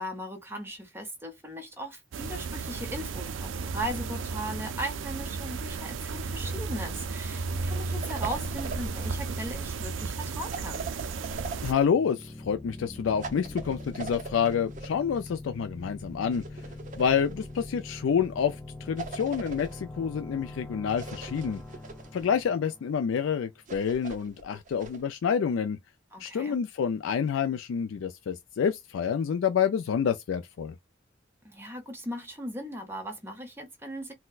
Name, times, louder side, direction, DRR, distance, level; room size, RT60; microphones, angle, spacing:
voice 1, 0.0-10.9 26.1-26.6 31.4-34.1, right 1 dB, 10° right, 0.9 m, -38 dB
sound 1, 2.1-11.7, right 4 dB, 75° right, 0.4 m, -34 dB
sound 2, 8.0-9.3 10.5-11.9 13.2-14.9 16.3-17.7 19.0-19.8 20.9-22.4 23.7-25.0, right 4 dB, 40° right, 0.7 m, -41 dB
voice 2, 11.6-16.4 17.0-18.6 18.8-21.6 22.1-25.8 26.2-30.7, left 7 dB, 85° left, 0.4 m, -28 dB
sound 3, 11.9-23.5, left 2 dB, 10° left, 0.5 m, -43 dB
4.1 x 2.1 x 2.3 m
head